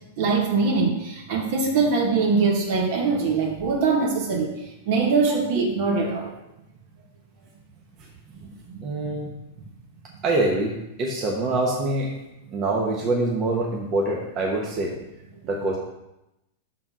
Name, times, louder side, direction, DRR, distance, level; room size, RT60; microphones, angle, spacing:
voice 1, 0.2-6.3 8.7-8.8, right 4 dB, 60° right, 0 dB, 1.8 m, -22 dB
voice 2, 8.8-9.3 10.2-12.1 12.5-14.9 15.4-15.8, right 2 dB, 35° right, -2 dB, 1.2 m, -25 dB
6.0 x 4.3 x 5.6 m, 0.91 s
hypercardioid pair, 115°, 0 cm